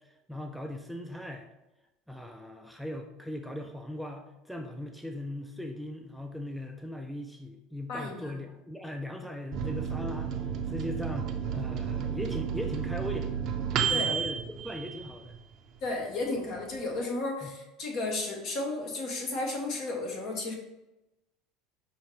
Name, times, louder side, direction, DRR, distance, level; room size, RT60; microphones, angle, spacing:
voice 1, 0.3-1.5 2.1-10.3 10.7-13.3 13.8-15.3 17.4-17.6, left 1 dB, ahead, 4 dB, 0.4 m, -39 dB
voice 2, 7.9-8.4 13.9-14.1 15.8-20.5, left 2 dB, 55° left, 2 dB, 1.0 m, -33 dB
Microwave oven, 9.5-15.6 16.0-16.1 16.4-17.0, right 7 dB, 55° right, 0.5 m, -32 dB
5.5 x 2.8 x 3.1 m, 0.98 s
hypercardioid pair, 85°, 0 cm